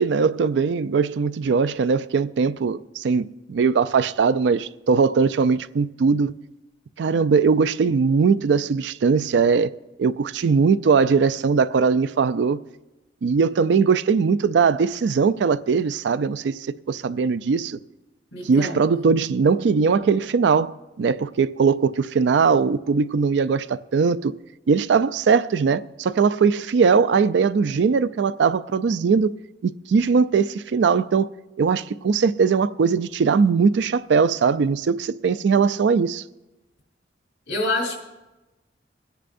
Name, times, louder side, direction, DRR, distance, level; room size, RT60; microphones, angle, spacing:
voice 1, 0.0-6.4 7.0-9.7 10.0-12.6 13.2-16.5 16.9-17.8 18.5-24.3 24.7-29.3 29.6-31.3 31.6-36.2, right 5 dB, 70° right, 0.4 m, -20 dB
voice 2, 18.3-19.2 37.5-38.0, left 2 dB, 70° left, 4.0 m, -27 dB
23.0 x 10.0 x 2.6 m
head